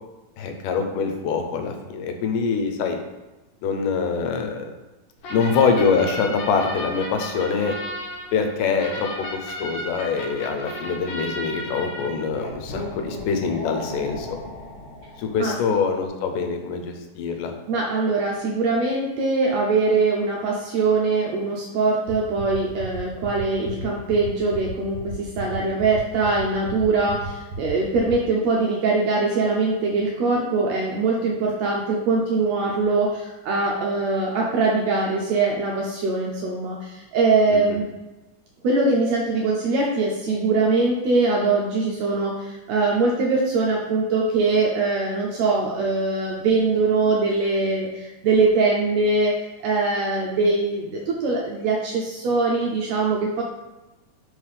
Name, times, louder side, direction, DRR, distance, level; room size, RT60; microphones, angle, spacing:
voice 1, 0.4-3.0 3.6-4.7 5.3-7.7 8.3-14.4 15.2-17.5 37.5-37.8, left 5 dB, 85° left, 5 dB, 2.3 m, -24 dB
sound 1, 5.2-15.6, left 1 dB, 65° left, 2.2 m, -34 dB
voice 2, 17.7-37.8 38.6-49.3 49.6-53.4, right 3 dB, 75° right, -2 dB, 1.6 m, -22 dB
sound 2, 22.1-28.1, right 2 dB, 55° right, 2.0 m, -34 dB
5.1 x 3.3 x 5.5 m, 1.1 s
omnidirectional pair, 3.7 m